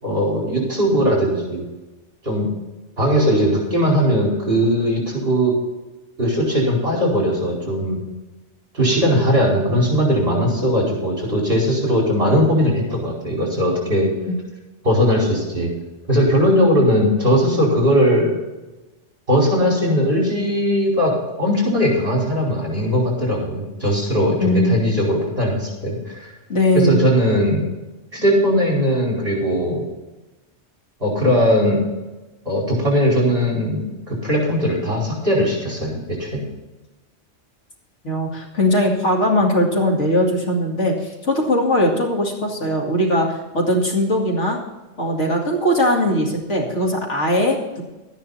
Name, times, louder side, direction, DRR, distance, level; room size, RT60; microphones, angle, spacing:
voice 1, 0.0-1.6 2.2-2.5 3.0-5.5 6.2-8.0 8.7-14.1 14.8-15.7 16.1-18.4 19.3-21.1 21.4-26.3 26.7-27.7 28.1-29.9 31.0-31.8 32.5-36.4, equal, 50° right, -3 dB, 5.3 m, -19 dB
voice 2, 24.4-24.8 26.5-27.0 38.0-44.6 45.0-47.8, left 1 dB, 65° left, -1 dB, 2.6 m, -19 dB
13.0 x 10.5 x 4.3 m, 1.1 s
omnidirectional pair, 1.3 m